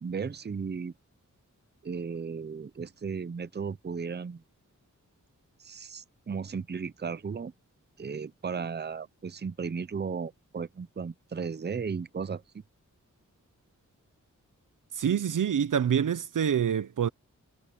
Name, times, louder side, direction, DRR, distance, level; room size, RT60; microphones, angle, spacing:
voice 1, 0.0-0.9 1.8-4.4 5.6-7.5 8.0-12.4, right 5 dB, 35° right, 0.6 m, -35 dB
voice 2, 15.0-17.1, right 8 dB, 80° right, 0.7 m, -26 dB
wide cardioid pair, 115°, 31 cm